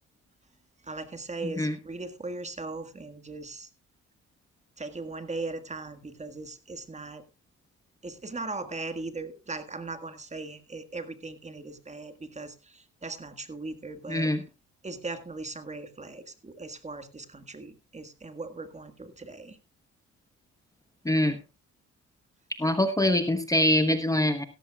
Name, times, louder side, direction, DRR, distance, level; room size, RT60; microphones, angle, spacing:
voice 1, 0.8-3.7 4.8-7.2 8.0-14.3 14.8-19.6, right 3 dB, 25° right, 10 dB, 1.6 m, -39 dB
voice 2, 1.4-1.7 14.1-14.4 21.0-21.4 22.6-24.4, left 1 dB, 10° left, 9 dB, 1.1 m, -24 dB
15.5 x 14.0 x 2.4 m, 0.26 s
cardioid pair, 90°, 30 cm